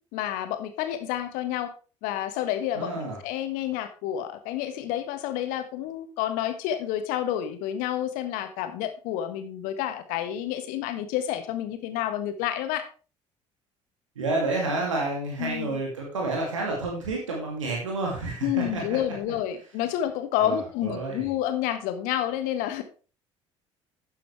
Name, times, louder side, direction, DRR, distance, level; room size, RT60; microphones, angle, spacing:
voice 1, 0.1-1.7 2.0-2.9 3.2-12.9 15.4-15.8 18.4-22.8, left 11 dB, 60° left, 9 dB, 1.4 m, -29 dB
voice 2, 2.7-3.2 14.2-19.0 20.4-21.3, right 2 dB, 80° right, -1 dB, 2.5 m, -29 dB
12.0 x 9.3 x 3.3 m, 0.36 s
figure-of-eight pair, 55°, 16 cm